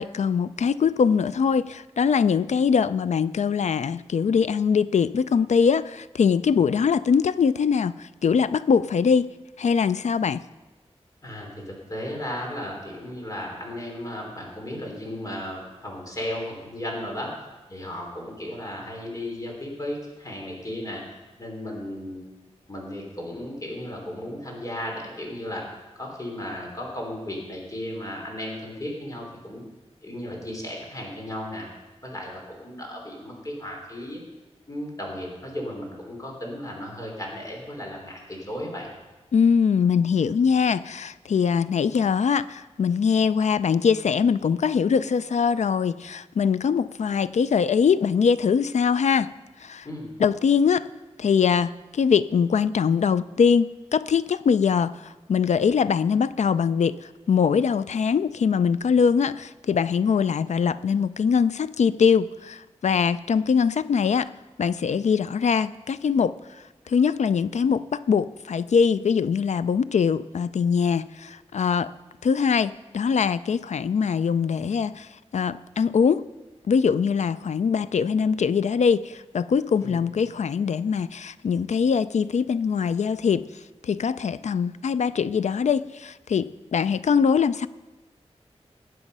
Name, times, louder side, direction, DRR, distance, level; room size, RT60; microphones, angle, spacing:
voice 1, 0.0-9.3 9.6-10.4 39.3-49.3 49.6-49.9 50.2-50.9 51.2-57.0 57.3-64.3 64.6-66.3 66.9-71.9 72.2-75.1 75.3-76.2 76.7-83.5 83.8-87.7, left 6 dB, 80° left, 16 dB, 0.4 m, -22 dB
voice 2, 11.2-17.3 17.7-21.0 21.4-22.2 22.7-25.7 26.0-29.6 30.0-31.7 32.0-34.2 34.7-38.9 49.8-50.1 79.8-80.0, left 1 dB, 30° left, -1 dB, 3.6 m, -35 dB
19.5 x 7.8 x 5.4 m, 1.1 s
wide cardioid pair, 105°, 12 cm